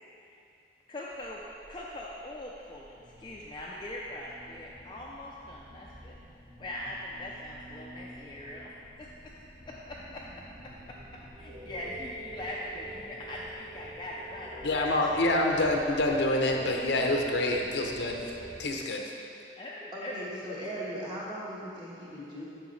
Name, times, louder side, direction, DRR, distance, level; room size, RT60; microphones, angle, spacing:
voice 1, 0.9-1.4 1.7-6.2 6.6-9.1 9.6-10.2 10.6-11.0 11.4-14.9 19.6-20.1 20.5-20.6, left 1 dB, 25° left, -4 dB, 0.4 m, -41 dB
sound 1, 1.1-18.7, right 1 dB, 5° right, 1.0 m, -52 dB
sound 2, 11.5-18.8, right 2 dB, 50° right, 1.6 m, -46 dB
voice 2, 14.6-18.3 18.6-19.1, left 1 dB, 75° left, 1 dB, 0.7 m, -27 dB
voice 3, 19.9-22.5, equal, 25° right, -7 dB, 1.3 m, -38 dB
8.6 x 6.1 x 3.2 m, 2.7 s
head